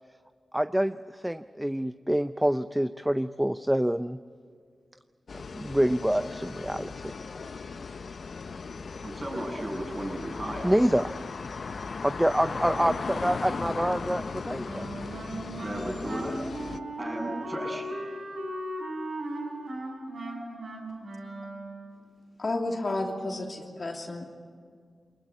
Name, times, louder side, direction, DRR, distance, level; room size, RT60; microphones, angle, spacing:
voice 1, 0.5-4.2 5.3-7.1 10.6-11.1 12.0-14.9, equal, 10° right, 12 dB, 0.6 m, -26 dB
sound 1, 5.3-16.8, left 4 dB, 65° left, 0.7 m, -37 dB
voice 2, 9.0-10.7 12.6-12.9 15.6-16.4 17.0-17.9, right 1 dB, 40° right, -1 dB, 7.6 m, -35 dB
Wind instrument woodwind instrument, 14.6-21.9, right 1 dB, 75° right, 6.8 m, -37 dB
voice 3, 22.4-24.2, left 2 dB, 50° left, 1 dB, 2.8 m, -31 dB
22.0 x 20.0 x 8.5 m, 2.1 s
cardioid pair, 45°, 0 cm